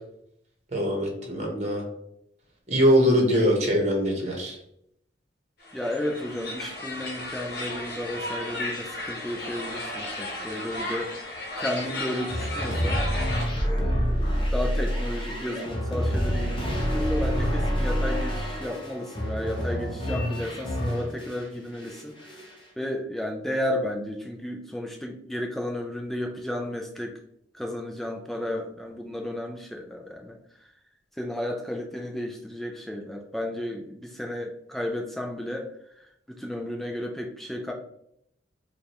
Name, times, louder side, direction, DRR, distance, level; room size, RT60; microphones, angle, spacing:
voice 1, 0.7-1.8 2.7-4.6, equal, 40° right, 0 dB, 1.1 m, -22 dB
sound 1, 5.6-13.5, left 1 dB, 55° left, 0.9 m, -34 dB
voice 2, 5.7-11.3 11.6-13.0 13.6-22.2 22.8-27.1 27.5-30.4 31.2-35.7 36.3-37.7, left 1 dB, ahead, 1 dB, 0.3 m, -33 dB
sound 2, 12.3-21.4 21.8-22.6, equal, 25° left, 0.8 m, -27 dB
4.9 x 2.3 x 2.9 m, 0.75 s
head